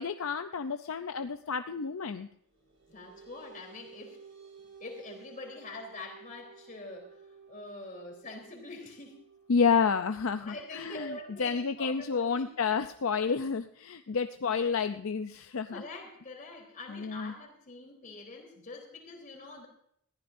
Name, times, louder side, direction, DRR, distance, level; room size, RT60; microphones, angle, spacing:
voice 1, 0.0-2.3 9.5-15.8 16.9-17.3, left 5 dB, 65° left, 8 dB, 0.5 m, -30 dB
sound 1, 2.5-13.5, right 5 dB, 55° right, 3.0 m, -55 dB
voice 2, 2.9-4.2 4.8-7.2 7.5-9.2 10.4-12.5 14.4-14.6 15.7-19.7, left 2 dB, 35° left, 1 dB, 3.6 m, -45 dB
20.5 x 15.0 x 2.6 m, 0.68 s
head